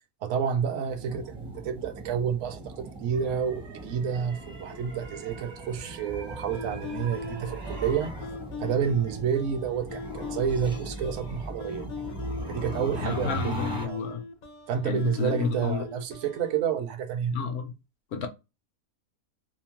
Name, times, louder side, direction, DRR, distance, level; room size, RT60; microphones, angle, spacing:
voice 1, 0.2-8.1 8.6-11.9 12.5-13.5 13.8-14.1 14.7-17.4, right 7 dB, 70° right, 0.8 m, -29 dB
sound 1, 0.9-13.9, equal, 5° right, 0.4 m, -39 dB
sound 2, 3.1-8.1, right 4 dB, 90° right, 1.2 m, -45 dB
sound 3, 6.5-16.6, left 4 dB, 85° left, 0.4 m, -40 dB
voice 2, 13.0-14.2 14.8-15.8 17.3-17.7 18.1-18.3, left 6 dB, 60° left, 0.7 m, -31 dB
2.8 x 2.0 x 2.9 m
omnidirectional pair, 1.5 m